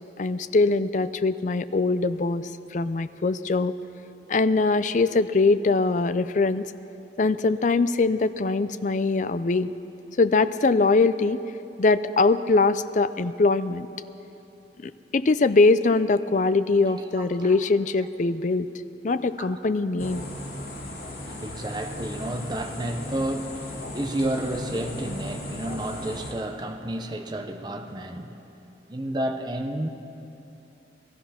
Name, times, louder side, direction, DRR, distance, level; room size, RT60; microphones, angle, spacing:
voice 1, 0.2-3.7 4.3-6.7 7.2-9.7 10.2-11.4 11.8-13.9 14.8-18.7 19.0-20.3, left 3 dB, 45° left, 13 dB, 0.5 m, -22 dB
voice 2, 16.9-17.6 19.4-19.6 20.7-28.4 28.9-29.9, right 1 dB, 25° right, 5 dB, 0.8 m, -31 dB
sound 1, 20.0-26.3, left 1 dB, 60° left, 2.6 m, -36 dB
18.5 x 13.5 x 5.8 m, 2.9 s
head